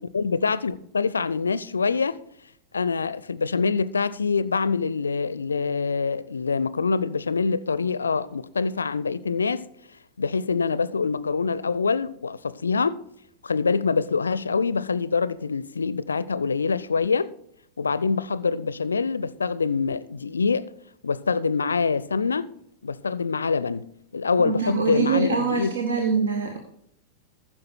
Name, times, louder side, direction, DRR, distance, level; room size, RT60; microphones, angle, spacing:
voice 1, 0.0-2.2 2.7-9.7 10.2-13.0 13.4-17.3 17.8-20.7 21.0-22.5 22.8-23.9 24.1-25.8, left 5 dB, 75° left, 0.4 m, -25 dB
voice 2, 24.4-26.6, right 5 dB, 70° right, 1.1 m, -24 dB
14.5 x 6.2 x 4.4 m
figure-of-eight pair, 90°, 0 cm